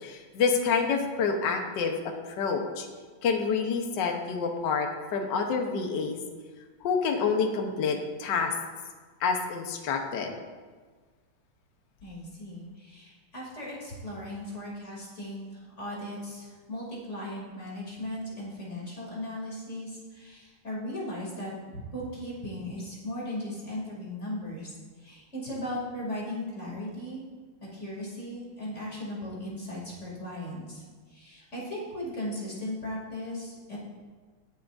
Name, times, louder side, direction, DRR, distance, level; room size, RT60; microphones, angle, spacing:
voice 1, 0.0-2.9 3.2-6.2 6.8-8.5 9.2-10.3, left 5 dB, 65° left, 3 dB, 1.6 m, -28 dB
voice 2, 12.0-24.7 25.0-27.2 27.7-30.8 31.1-33.8, left 1 dB, 35° left, -5 dB, 3.2 m, -37 dB
20.5 x 7.1 x 2.6 m, 1.5 s
omnidirectional pair, 2.3 m